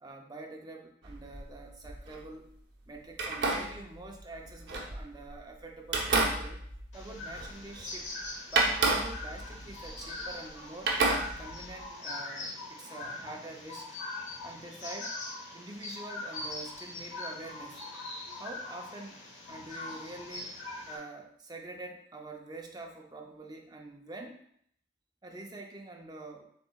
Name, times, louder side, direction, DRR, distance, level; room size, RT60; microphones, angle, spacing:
voice 1, 0.0-2.5 2.9-6.6 6.9-8.1 8.5-11.0 11.4-13.9 14.4-15.2 15.5-17.8 18.3-20.5 20.9-24.4 25.2-26.4, right 2 dB, 20° right, 1 dB, 0.5 m, -45 dB
sound 1, 1.0-2.2 3.1-5.4 5.8-8.0 8.5-10.5 10.9-11.8, right 3 dB, 70° right, 0.9 m, -31 dB
sound 2, 6.9-21.0, left 2 dB, 80° left, 1.2 m, -42 dB
7.2 x 3.0 x 2.3 m, 0.66 s
head